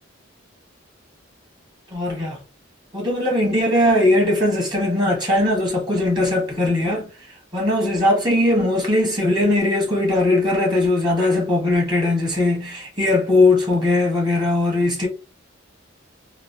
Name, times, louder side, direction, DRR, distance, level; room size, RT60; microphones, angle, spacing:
voice 1, 1.9-2.4 2.9-7.1 7.5-15.1, left 2 dB, 25° right, 1.2 m, -19 dB
3.1 x 2.4 x 2.6 m
head